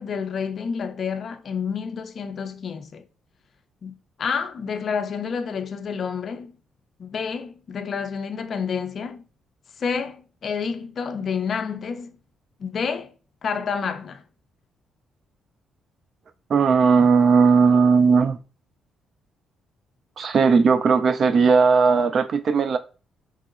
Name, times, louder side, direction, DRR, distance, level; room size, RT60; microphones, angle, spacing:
voice 1, 0.0-3.1 3.8-6.6 7.0-9.2 9.8-12.2 12.6-13.1 13.4-14.2, left 6 dB, 50° left, 0.4 m, -29 dB
voice 2, 16.5-18.4 20.2-22.8, right 5 dB, 55° right, 0.3 m, -17 dB
3.0 x 2.9 x 2.3 m
cardioid pair, 100°, 0 cm